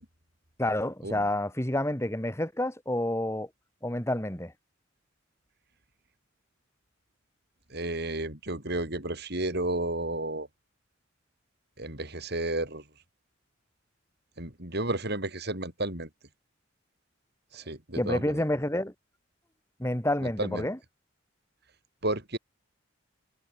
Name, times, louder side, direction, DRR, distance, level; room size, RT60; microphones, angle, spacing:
voice 1, 0.6-3.5 3.8-4.5 18.0-18.9 19.8-20.8, left 1 dB, 15° left, 3.2 m, -29 dB
voice 2, 7.7-10.5 11.8-12.8 14.4-16.1 17.5-18.4 20.2-20.7 22.0-22.4, right 2 dB, 55° right, 6.7 m, -32 dB
head